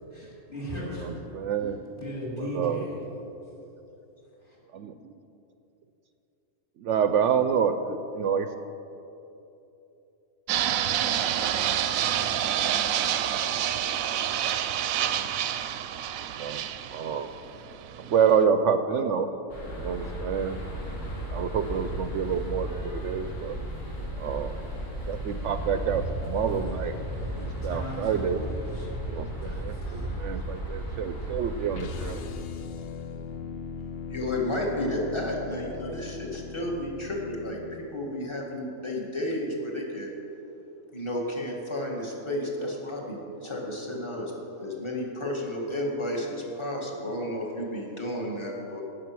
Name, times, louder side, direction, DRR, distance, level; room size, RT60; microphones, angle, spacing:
voice 1, 0.1-1.4 2.0-3.0 4.4-4.6 26.3-30.2, equal, 40° left, -5 dB, 3.7 m, -37 dB
voice 2, 1.0-1.8 2.4-2.9 3.5-3.6 4.7-5.1 6.8-8.5 15.0-15.2 16.4-16.6 16.9-17.3 18.0-19.3 19.8-20.6 21.3-23.6 24.2-24.6 25.1-27.0 27.4-28.4 29.1-32.2, right 7 dB, 70° right, 9 dB, 0.8 m, -28 dB
Fixed-wing aircraft airplane, 10.5-18.4, right 10 dB, 90° right, 1.0 m, -28 dB
sound 1, 19.5-32.2, right 1 dB, 75° left, 4.0 m, -35 dB
sound 2, 31.7-37.8, left 6 dB, 60° left, 0.7 m, -39 dB
voice 3, 34.1-37.6 37.9-40.1 40.9-44.3 44.6-48.8, left 1 dB, 20° left, -2 dB, 1.9 m, -32 dB
18.0 x 6.7 x 6.0 m, 2.9 s
omnidirectional pair, 1.4 m